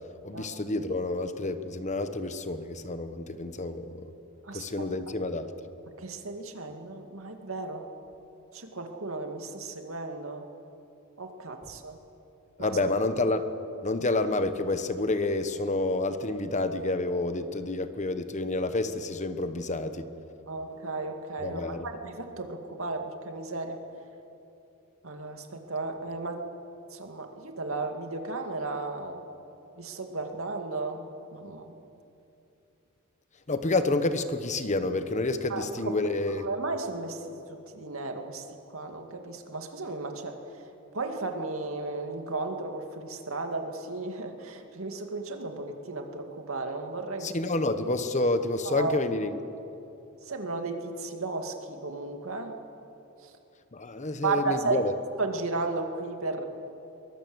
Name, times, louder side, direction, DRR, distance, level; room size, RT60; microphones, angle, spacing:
voice 1, 0.2-4.1 4.5-5.5 12.6-13.5 13.8-20.0 21.4-21.9 33.5-36.4 47.2-49.4 53.7-54.9, left 2 dB, 35° left, 10 dB, 1.2 m, -29 dB
voice 2, 4.4-4.9 6.0-7.9 8.5-10.5 11.2-12.0 12.6-12.8 20.5-23.8 25.0-26.4 26.9-29.2 29.8-31.7 35.5-36.0 36.4-38.5 38.7-40.4 40.9-47.3 48.6-49.0 50.2-52.5 53.2-53.3 54.2-54.8 55.2-56.4, right 3 dB, 75° right, 4 dB, 2.4 m, -34 dB
23.0 x 21.5 x 8.0 m, 2.8 s
head